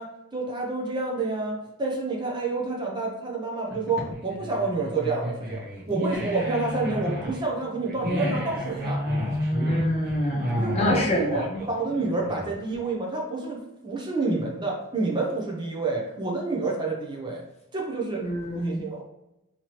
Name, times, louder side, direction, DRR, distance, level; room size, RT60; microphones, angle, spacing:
voice 1, 0.0-9.0 10.5-17.4 17.7-18.2 18.5-19.0, right 3 dB, 20° right, -2 dB, 0.6 m, -29 dB
sound 1, 3.7-12.7, equal, 50° right, 0.9 m, -29 dB
voice 2, 9.6-11.6 18.2-18.8, left 1 dB, 30° left, -1 dB, 0.8 m, -28 dB
4.5 x 2.9 x 3.0 m, 0.93 s
head